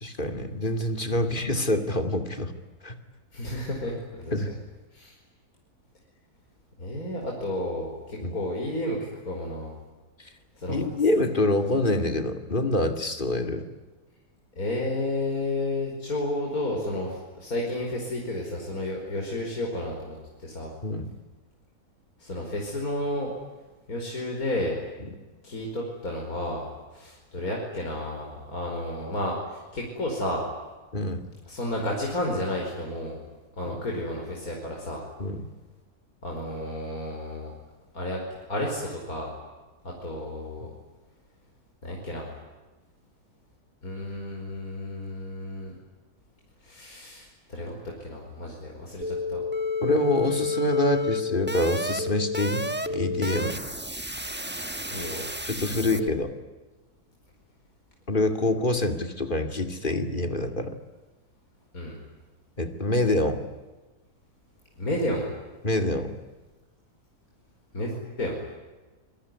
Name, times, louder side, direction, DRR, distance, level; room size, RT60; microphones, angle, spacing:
voice 1, 0.0-2.5 2.8-2.9 4.3-4.5 8.2-8.3 10.2-10.3 10.7-13.7 20.8-21.1 25.0-25.1 30.9-31.3 35.2-35.5 40.6-40.7 49.8-53.6 55.4-56.3 58.1-60.7 62.6-63.4 65.6-66.2, left 2 dB, 30° left, 7 dB, 2.6 m, -26 dB
voice 2, 3.3-4.4 4.9-5.1 6.8-9.7 10.6-10.9 14.6-20.7 22.2-23.3 23.9-24.8 25.4-26.7 26.9-30.4 31.5-33.2 33.6-35.0 36.2-37.5 37.9-38.2 38.5-39.3 39.8-40.7 41.8-42.3 43.8-45.7 46.6-49.4 54.9-55.3 61.7-62.0 64.8-65.3 67.7-68.4, left 1 dB, 70° left, -1 dB, 5.5 m, -32 dB
sound 1, 49.0-56.1, left 3 dB, 10° right, 1.1 m, -30 dB
27.0 x 22.0 x 9.8 m, 1.2 s
omnidirectional pair, 1.6 m